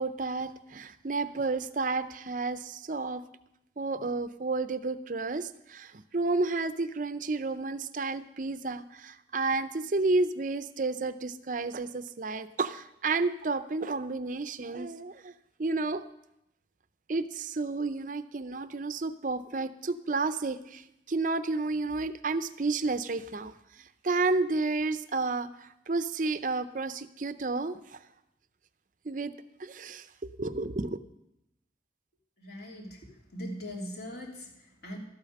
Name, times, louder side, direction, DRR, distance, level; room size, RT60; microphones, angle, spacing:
voice 1, 0.0-3.2 3.8-15.3 15.6-16.0 17.1-23.5 24.0-28.0 29.1-29.3 29.6-30.1 30.4-31.0, right 3 dB, 45° right, 13 dB, 0.5 m, -31 dB
voice 2, 32.4-35.0, equal, 60° left, -2 dB, 3.2 m, -41 dB
12.5 x 8.6 x 6.5 m, 0.84 s
head